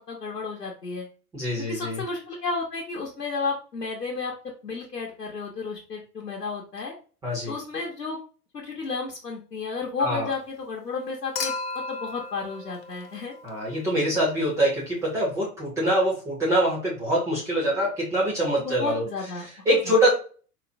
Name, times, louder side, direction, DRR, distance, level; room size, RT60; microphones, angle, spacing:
voice 1, 0.1-1.1 1.7-4.3 4.6-6.9 7.5-8.2 8.5-11.5 11.9-13.3 18.6-19.9, left 4 dB, 85° left, -2 dB, 0.8 m, -32 dB
voice 2, 1.3-2.0 7.2-7.5 10.0-10.3 13.4-19.0 19.7-20.1, right 1 dB, 5° right, -5 dB, 0.4 m, -24 dB
Human group actions / Chink clink / Liquid, 11.4-13.7 15.2-15.3, left 4 dB, 40° left, 0.7 m, -34 dB
4.3 x 2.0 x 2.5 m, 0.38 s
figure-of-eight pair, 100°, 47 cm